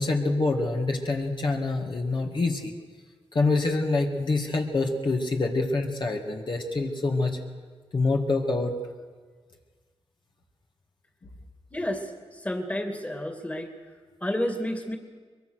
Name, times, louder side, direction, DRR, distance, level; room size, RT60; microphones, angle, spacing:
voice 1, 0.0-2.7 3.3-7.4 7.9-8.7, left 3 dB, 45° left, 1 dB, 2.3 m, -26 dB
voice 2, 11.7-12.1 12.4-13.7 14.2-15.0, left 1 dB, 15° left, 5 dB, 2.6 m, -30 dB
23.5 x 22.0 x 6.5 m, 1.5 s
cardioid pair, 90°, 11 cm